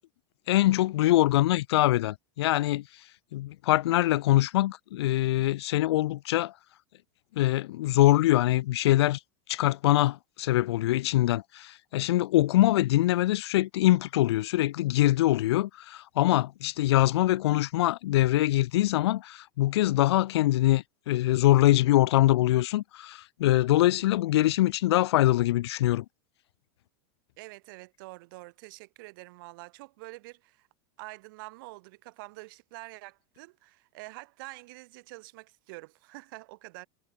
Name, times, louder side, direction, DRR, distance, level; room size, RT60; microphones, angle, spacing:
voice 1, 0.5-2.8 3.3-6.5 7.4-9.2 9.5-26.0, left 15 dB, 85° left, 0.6 m, -23 dB
voice 2, 27.4-30.7 31.0-36.9, right 23 dB, 55° right, 4.4 m, -46 dB
supercardioid pair, 165°, 13 cm